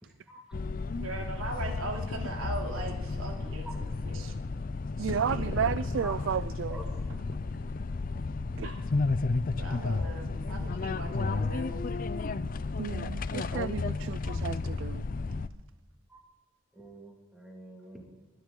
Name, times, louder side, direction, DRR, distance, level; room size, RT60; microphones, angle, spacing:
voice 1, 0.0-0.4 3.6-3.8 6.0-6.4 6.7-7.0 10.5-10.6 14.2-14.5 16.1-16.2 16.7-18.3, right 1 dB, 5° right, 1 dB, 2.2 m, -47 dB
sound 1, 0.5-15.5, left 3 dB, 40° left, 0.4 m, -32 dB
voice 2, 1.0-4.2 5.0-6.0 8.6-8.8 9.5-11.9, right 2 dB, 85° right, 2 dB, 3.0 m, -40 dB
voice 3, 5.0-6.8 8.6-8.7 12.8-15.0, right 7 dB, 60° right, 16 dB, 0.3 m, -33 dB
21.5 x 10.0 x 3.9 m, 1.1 s
head